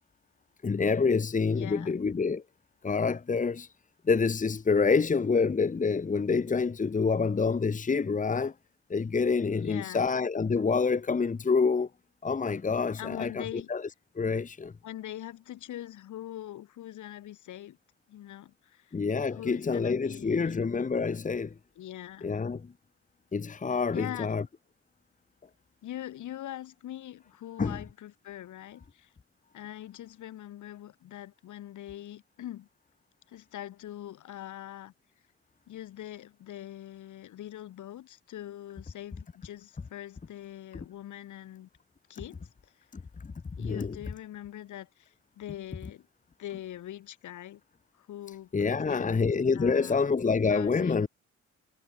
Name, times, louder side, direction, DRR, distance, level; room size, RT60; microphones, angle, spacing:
voice 1, 0.6-2.4 2.8-3.7 4.1-8.5 8.9-11.9 12.2-13.9 14.1-14.7 18.9-21.5 22.2-22.7 23.3-24.4 27.6-27.8 42.9-43.3 43.6-44.0 48.5-51.1, left 5 dB, 25° left, 1.4 m, -27 dB
voice 2, 1.6-2.0 9.6-10.1 13.0-13.7 14.8-17.8 18.1-18.9 19.3-20.7 21.7-22.4 23.9-24.4 25.8-29.1 29.5-32.7 33.3-34.9 35.7-41.7 42.1-42.7 43.6-46.1 46.4-47.6 48.0-49.2 49.5-50.0 50.5-51.0, left 12 dB, 75° left, 5.1 m, -42 dB
cardioid pair, 90°, 30 cm